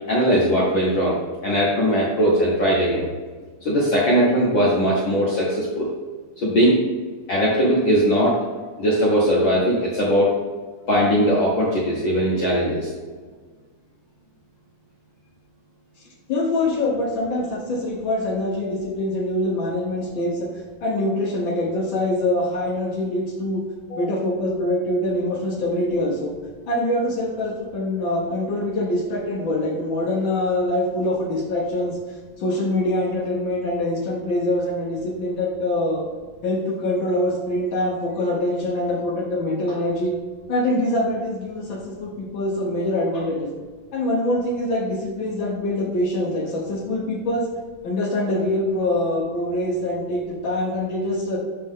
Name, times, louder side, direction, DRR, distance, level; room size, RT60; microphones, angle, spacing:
voice 1, 0.1-1.2 1.4-3.1 3.6-5.9 6.4-6.8 7.3-8.4 8.8-10.3 10.9-12.9 23.9-24.0, equal, 60° left, -5 dB, 1.2 m, -19 dB
voice 2, 16.3-20.5 20.8-23.6 23.9-26.3 26.7-31.9 32.4-36.1 36.4-40.1 40.5-43.5 43.9-47.4 47.8-51.4, left 1 dB, 80° left, -3 dB, 1.0 m, -24 dB
6.8 x 5.5 x 3.6 m, 1.5 s
omnidirectional pair, 3.6 m